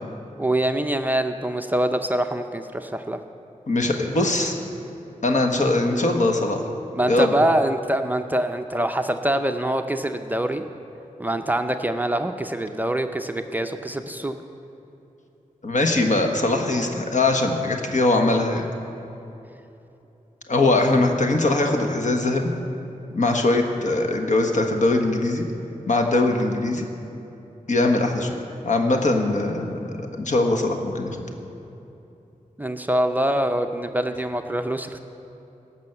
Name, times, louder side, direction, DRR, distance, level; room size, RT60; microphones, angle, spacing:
voice 1, 0.4-3.2 6.9-10.6 11.2-14.4 20.7-21.1 32.6-35.0, right 1 dB, 15° right, 6 dB, 0.5 m, -24 dB
voice 2, 3.7-4.5 5.2-6.6 7.1-7.3 15.6-18.7 20.5-22.5 23.1-25.4 25.9-26.9 27.7-28.3 28.6-31.2, left 2 dB, 60° left, 3 dB, 1.4 m, -21 dB
18.0 x 6.2 x 7.9 m, 2.9 s
wide cardioid pair, 110°, 14 cm